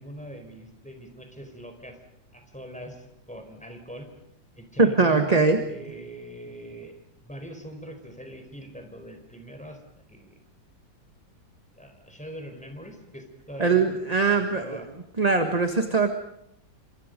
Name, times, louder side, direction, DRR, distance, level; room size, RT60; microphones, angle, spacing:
voice 1, 0.0-2.0 2.3-4.1 4.6-5.3 5.7-9.8 10.1-10.4 11.7-13.9 14.5-14.9, equal, 5° left, 5 dB, 4.3 m, -42 dB
voice 2, 4.8-5.6 13.6-14.8 15.2-16.1, right 4 dB, 20° right, 6 dB, 1.5 m, -21 dB
29.5 x 26.5 x 5.3 m, 0.77 s
omnidirectional pair, 2.1 m